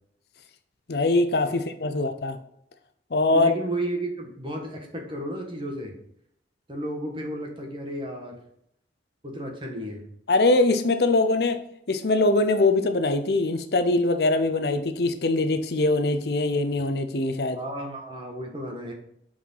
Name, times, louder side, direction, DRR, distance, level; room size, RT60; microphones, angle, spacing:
voice 1, 0.9-2.4 3.1-3.5 10.3-11.6 11.9-17.6, left 2 dB, 60° left, 0.6 m, -22 dB
voice 2, 3.3-5.9 6.7-8.4 9.2-10.0 17.6-18.9, right 1 dB, 25° right, 1.3 m, -33 dB
6.2 x 4.7 x 5.5 m
head